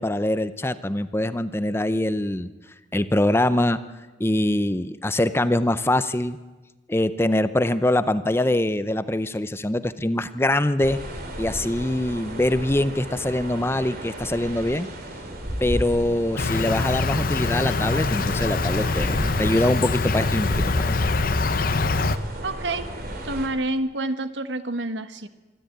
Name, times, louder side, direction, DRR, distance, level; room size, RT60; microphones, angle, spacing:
voice 1, 0.0-2.5 2.9-3.8 4.2-6.4 6.9-11.0 11.4-14.9 15.6-21.0, left 1 dB, 15° left, 13 dB, 0.6 m, -23 dB
sound 1, 10.8-23.5, right 1 dB, 55° right, 3.3 m, -34 dB
Insect, 16.4-22.2, left 3 dB, 50° left, 0.8 m, -24 dB
voice 2, 22.4-22.9 23.2-25.3, right 2 dB, 80° right, 10 dB, 1.4 m, -28 dB
25.5 x 12.5 x 9.3 m, 1.2 s
head